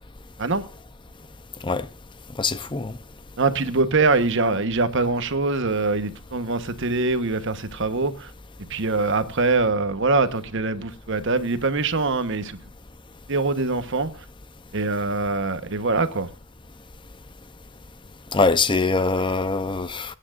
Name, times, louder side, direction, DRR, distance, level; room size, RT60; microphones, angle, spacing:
voice 1, 2.4-2.9 18.3-20.2, left 3 dB, 20° left, 0.7 m, -23 dB
voice 2, 3.4-8.3 8.7-12.6 13.3-14.1 14.7-16.3, right 3 dB, 60° right, 1.2 m, -23 dB
23.0 x 9.8 x 2.5 m
head